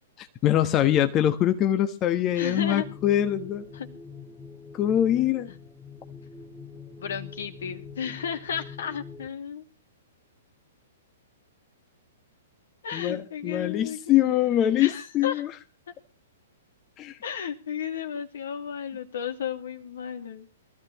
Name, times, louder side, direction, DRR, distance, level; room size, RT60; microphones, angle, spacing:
voice 1, 0.2-3.6 4.7-5.5 12.9-15.5 17.0-17.2, left 11 dB, 30° left, 8 dB, 1.3 m, -23 dB
voice 2, 2.3-2.9 3.7-3.9 5.5-5.6 7.0-9.6 12.8-14.0 14.8-15.4 17.2-20.5, left 8 dB, 65° left, 8 dB, 2.4 m, -33 dB
sound 1, 2.4-9.3, left 5 dB, 5° left, 2.1 m, -44 dB
23.0 x 14.0 x 3.0 m, 0.34 s
figure-of-eight pair, 115°, 0 cm